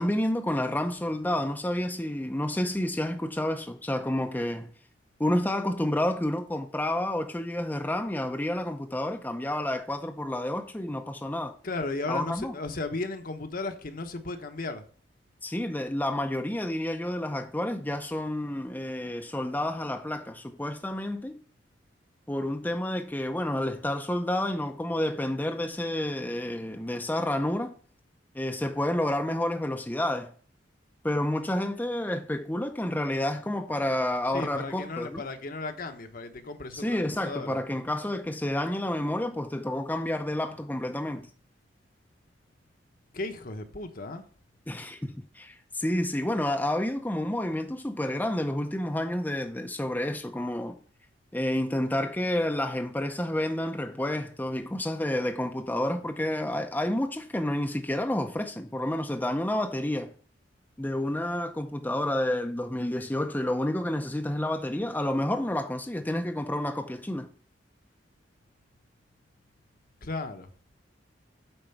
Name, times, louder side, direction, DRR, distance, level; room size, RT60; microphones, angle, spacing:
voice 1, 0.0-4.7 5.2-11.5 12.1-12.6 15.4-21.4 22.3-27.7 28.3-30.3 31.0-35.2 36.7-41.3 44.7-50.8 51.3-60.1 60.8-67.3, left 1 dB, 10° left, 0.6 m, -29 dB
voice 2, 11.6-14.8 34.3-37.6 43.1-44.2 70.0-70.5, left 3 dB, 50° left, 1.1 m, -35 dB
8.9 x 4.4 x 5.8 m
head